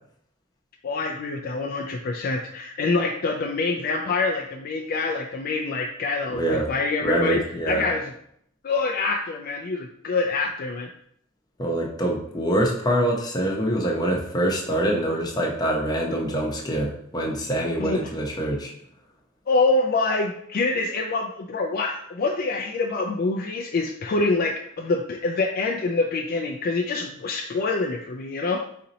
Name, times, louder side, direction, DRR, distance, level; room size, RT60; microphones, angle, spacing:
voice 1, 0.8-7.4 7.7-8.1 8.6-10.9 17.8-18.1 19.5-28.6, left 3 dB, 45° left, 2 dB, 0.3 m, -26 dB
voice 2, 6.3-6.7 7.0-7.9 11.6-18.7, right 1 dB, 20° left, -1 dB, 0.8 m, -25 dB
4.1 x 2.8 x 4.0 m, 0.69 s
head